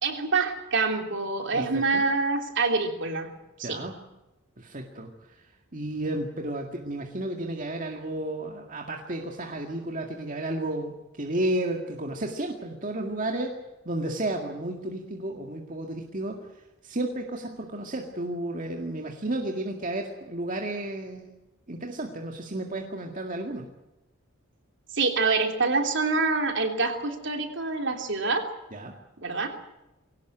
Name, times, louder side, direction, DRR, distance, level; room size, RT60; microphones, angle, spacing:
voice 1, 0.0-3.3 3.6-3.8 24.9-28.5 29.2-29.5, right 3 dB, 60° right, 4 dB, 3.2 m, -26 dB
voice 2, 1.5-2.0 3.6-4.0 4.6-5.5 5.7-13.6 13.9-21.3 21.7-23.7 28.7-28.9, right 1 dB, 40° right, 2 dB, 2.0 m, -32 dB
22.0 x 18.0 x 9.1 m, 0.97 s
head